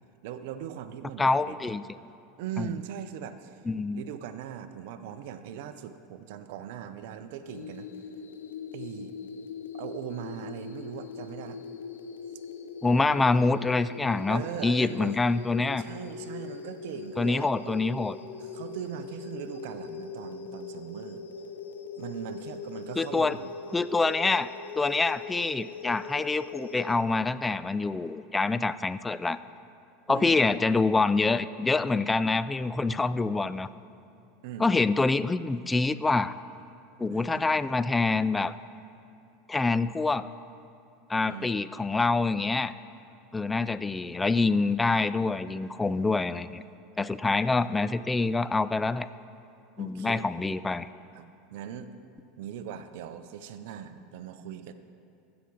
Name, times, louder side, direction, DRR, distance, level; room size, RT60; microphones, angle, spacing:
voice 1, 0.2-1.6 2.4-3.6 3.9-7.9 8.7-9.1 9.7-11.6 14.3-15.2 15.8-17.7 18.4-21.3 22.0-23.8 30.1-30.4 34.4-34.7 37.1-37.5 41.2-41.5 47.3-47.4 49.8-50.3 51.1-51.9 52.4-54.7, right 9 dB, 65° right, 11 dB, 0.6 m, -40 dB
voice 2, 1.2-1.8 2.6-2.7 3.7-4.1 12.8-15.8 17.2-18.2 23.0-23.4 23.7-24.5 24.8-29.4 30.1-33.7 34.6-36.4 37.0-38.5 39.5-40.3 41.1-42.7 43.3-46.6 47.0-49.1 49.8-50.9, left 3 dB, 15° left, 15 dB, 0.3 m, -26 dB
sound 1, 7.5-27.0, left 5 dB, 85° left, 0.6 m, -41 dB
15.0 x 5.8 x 4.0 m, 2.7 s
hypercardioid pair, 85°, 0 cm